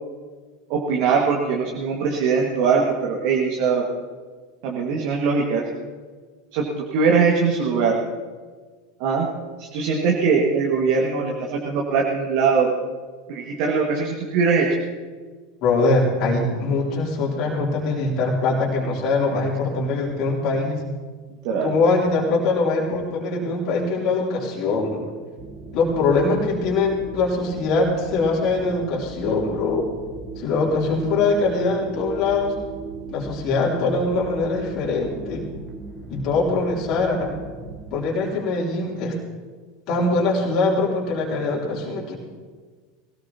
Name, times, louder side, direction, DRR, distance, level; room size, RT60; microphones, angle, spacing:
voice 1, 0.7-3.9 4.6-5.6 6.5-8.0 9.0-9.3 9.6-12.7 13.3-14.8 21.3-21.7, right 5 dB, 50° right, -1 dB, 1.8 m, -21 dB
voice 2, 15.6-20.8 21.6-25.1 25.7-29.9 30.4-32.6 33.1-35.5 36.1-37.3 37.9-39.2 39.9-42.2, left 3 dB, 45° left, -3 dB, 3.2 m, -22 dB
sound 1, 25.4-38.0, right 4 dB, 30° right, 2.1 m, -38 dB
22.5 x 17.5 x 2.9 m, 1.5 s
figure-of-eight pair, 80°, 0 cm